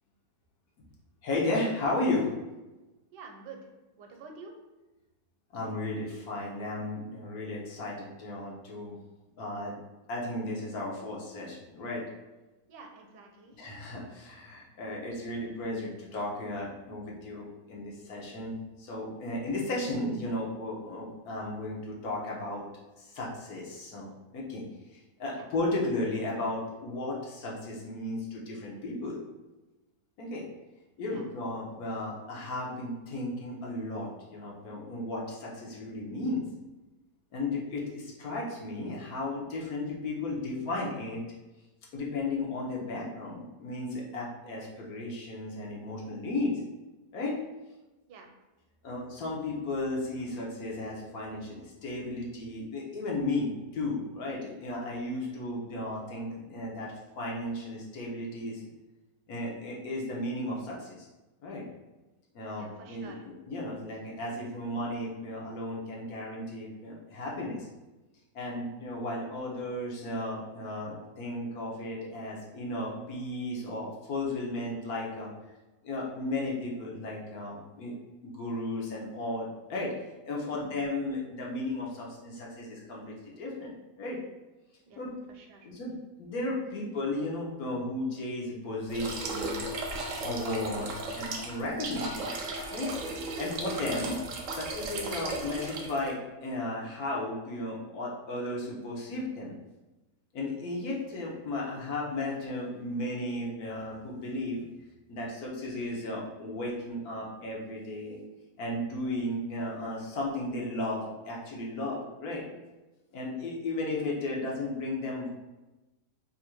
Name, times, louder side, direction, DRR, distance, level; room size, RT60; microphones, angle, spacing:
voice 1, 1.2-2.3 5.5-9.0 9.4-9.8 10.1-12.0 13.6-22.6 23.0-24.6 24.9-29.2 30.2-30.5 31.0-36.5 37.3-41.2 41.9-46.6 47.1-47.4 48.8-58.6 59.3-61.1 61.4-61.6 62.3-67.7 68.3-75.3 75.8-77.9 78.2-79.9 80.2-83.7 84.0-84.2 85.0-85.1 85.6-89.7 90.2-92.3 92.7-92.9 93.4-94.2 94.5-99.5 100.3-104.6 105.1-108.2 108.6-112.4 113.1-115.3, left 2 dB, 65° left, -3 dB, 1.2 m, -34 dB
voice 2, 3.1-3.7 4.0-4.5 12.7-13.6 25.3-25.5 31.1-31.3 48.1-48.3 62.6-63.2 80.4-80.7 84.9-85.7 86.7-86.8 92.9-93.2, right 4 dB, 85° right, 3 dB, 1.2 m, -49 dB
sound 1, 88.9-96.1, right 2 dB, 65° right, 0.9 m, -36 dB
3.1 x 2.5 x 4.4 m, 1.1 s
omnidirectional pair, 1.8 m